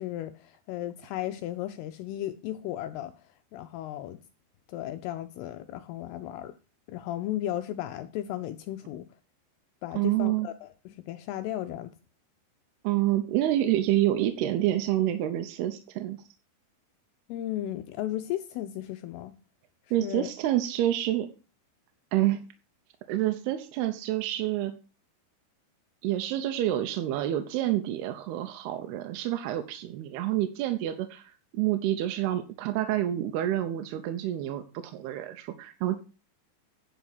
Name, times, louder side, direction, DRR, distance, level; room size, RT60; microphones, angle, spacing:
voice 1, 0.0-3.1 3.5-4.2 4.7-6.5 6.9-9.1 9.8-11.9 17.3-19.4 20.0-20.3, left 13 dB, 90° left, 2.3 m, -35 dB
voice 2, 9.9-10.5 12.8-16.2 19.9-21.3 22.1-22.4 23.1-24.7 26.0-36.0, right 13 dB, 75° right, 2.5 m, -28 dB
10.5 x 4.8 x 6.5 m
omnidirectional pair, 5.3 m